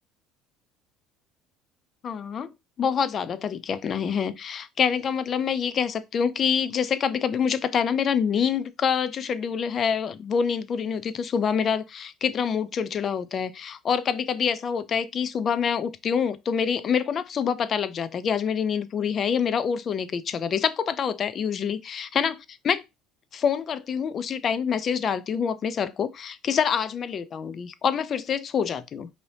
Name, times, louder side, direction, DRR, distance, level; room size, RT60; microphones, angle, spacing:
voice 1, 2.0-2.5 2.8-22.4 22.6-22.8 23.3-29.1, left 7 dB, 35° left, 0.3 m, -26 dB
3.2 x 2.7 x 2.7 m
cardioid pair, 135°, 0 cm